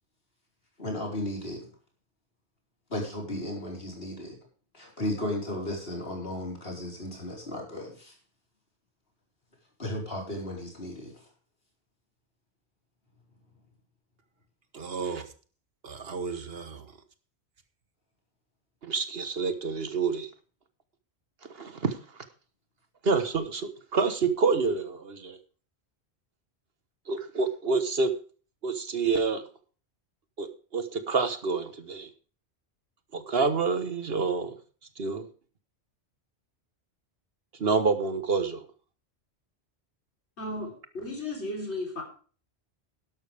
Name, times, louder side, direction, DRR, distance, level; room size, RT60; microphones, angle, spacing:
voice 1, 0.8-1.7 2.9-4.4 4.7-8.1 9.8-11.1, left 1 dB, 60° left, -1 dB, 4.7 m, -34 dB
voice 2, 14.7-15.3 15.8-16.8 18.8-20.3 21.5-22.0 23.0-25.4 27.1-28.1 28.6-29.4 30.4-32.1 33.1-34.5 35.0-35.3 37.6-38.6, right 4 dB, 60° right, 10 dB, 1.5 m, -28 dB
voice 3, 40.4-42.0, left 2 dB, 80° left, 1 dB, 4.0 m, -35 dB
12.0 x 12.0 x 3.4 m, 0.40 s
omnidirectional pair, 1.1 m